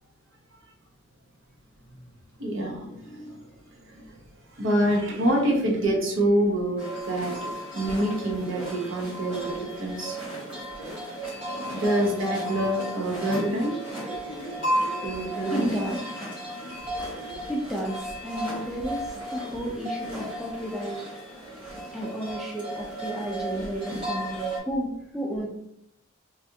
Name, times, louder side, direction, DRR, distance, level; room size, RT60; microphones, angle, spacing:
voice 1, 2.4-3.4 3.9-4.0 4.6-7.3 7.7-10.2 11.6-13.7 15.0-15.8, right 1 dB, 70° right, -1 dB, 0.8 m, -26 dB
sound 1, 6.8-24.6, right 1 dB, 25° right, 1.2 m, -34 dB
voice 2, 15.5-16.0 17.5-21.0 21.9-24.9 25.1-25.5, equal, ahead, -2 dB, 0.4 m, -32 dB
3.3 x 2.4 x 2.7 m, 0.77 s
head